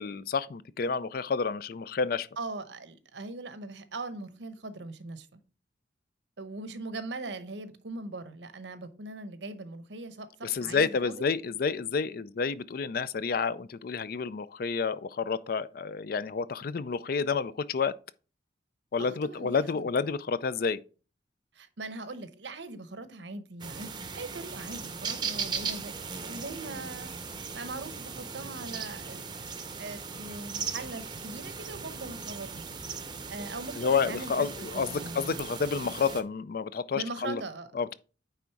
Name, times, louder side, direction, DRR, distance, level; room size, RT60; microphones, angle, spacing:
voice 1, 0.0-2.3 10.4-17.9 18.9-20.8 33.8-37.4 37.7-37.9, left 5 dB, 55° left, 0.4 m, -30 dB
voice 2, 2.4-5.4 6.4-11.3 19.0-19.9 21.5-27.1 27.5-29.3 29.8-32.7 33.3-34.5 34.7-35.4 36.9-37.7, right 2 dB, 80° right, 0.9 m, -40 dB
sound 1, 23.6-36.2, right 5 dB, 25° right, 0.7 m, -38 dB
9.1 x 3.6 x 4.5 m
head